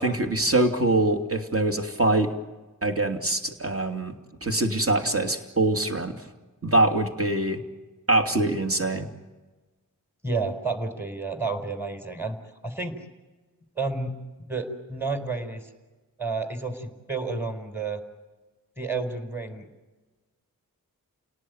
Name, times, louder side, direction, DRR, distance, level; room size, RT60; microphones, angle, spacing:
voice 1, 0.0-2.3 2.8-4.1 4.4-6.2 6.6-7.6 8.1-9.1, right 2 dB, 40° right, 4 dB, 2.8 m, -24 dB
voice 2, 10.2-12.4 12.6-13.0 13.8-14.1 14.4-15.7 16.2-18.0 18.8-19.6, right 3 dB, 5° right, 6 dB, 4.3 m, -30 dB
30.0 x 18.5 x 9.4 m, 1.2 s
wide cardioid pair, 75°, 35 cm